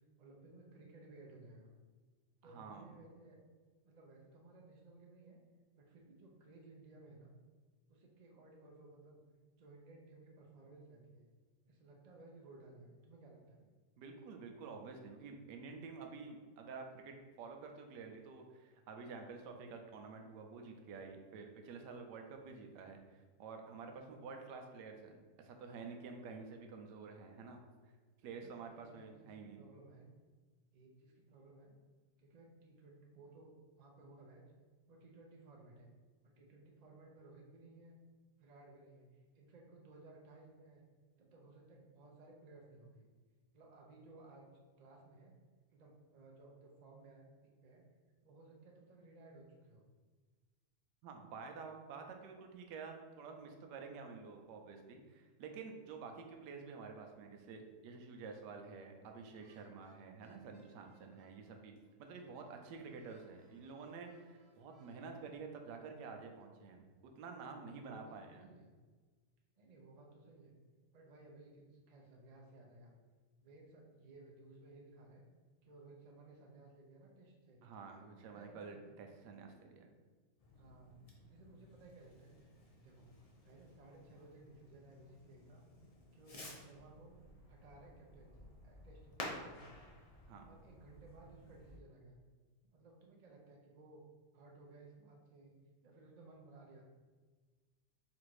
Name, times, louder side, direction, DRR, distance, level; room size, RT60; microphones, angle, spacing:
voice 1, 0.0-1.7 2.4-3.4 3.8-5.4 5.8-7.3 7.9-9.2 9.6-11.3 11.7-13.7 28.3-30.1 30.7-31.7 32.2-34.4 34.9-35.9 36.2-38.0 38.4-40.8 41.2-43.1 43.5-44.5 44.8-45.3 45.7-47.8 48.2-49.9 67.7-68.7 69.6-70.5 70.9-72.9 73.4-75.2 75.6-77.6 78.3-78.8 80.5-81.0 81.3-82.4 82.8-83.1 83.4-85.6 86.1-87.2 87.5-89.9 90.4-92.2 92.7-94.0 94.3-95.5 95.8-96.8, right 2 dB, 65° right, -1 dB, 0.4 m, -59 dB
voice 2, 2.4-2.9 14.0-27.6 28.2-29.6 51.0-61.7 62.0-66.8 67.2-68.4 77.6-79.9 90.3-90.5, right 4 dB, 90° right, 3 dB, 1.2 m, -50 dB
sound 1, 59.4-65.4, right 2 dB, 45° right, 1.1 m, -71 dB
Fireworks, 80.4-91.8, left 1 dB, 60° left, 0.3 m, -54 dB
4.0 x 2.5 x 4.6 m, 1.4 s
omnidirectional pair, 1.8 m